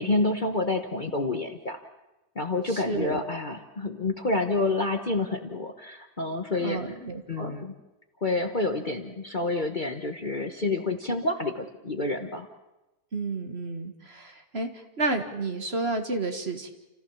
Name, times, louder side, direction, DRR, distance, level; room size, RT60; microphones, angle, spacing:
voice 1, 0.0-1.8 2.3-6.8 7.3-7.7 8.2-12.5, left 2 dB, 35° left, 5 dB, 1.2 m, -28 dB
voice 2, 2.7-3.2 6.6-7.6 13.1-16.7, right 3 dB, 40° right, 5 dB, 1.9 m, -31 dB
29.0 x 15.0 x 7.2 m, 1.0 s
omnidirectional pair, 1.7 m